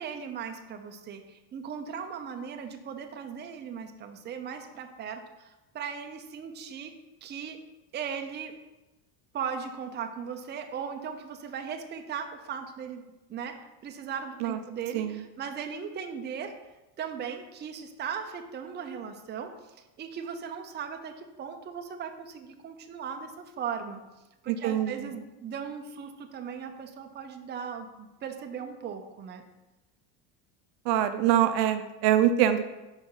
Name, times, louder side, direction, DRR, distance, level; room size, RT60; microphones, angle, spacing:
voice 1, 0.0-6.9 7.2-7.6 7.9-8.6 9.3-13.0 13.3-16.6 17.0-24.0 24.4-29.4, right 7 dB, 20° right, 6 dB, 0.5 m, -38 dB
voice 2, 24.5-25.0 30.9-32.6, right 11 dB, 60° right, 10 dB, 0.6 m, -24 dB
5.3 x 4.8 x 4.5 m, 1.0 s
supercardioid pair, 110°, 48 cm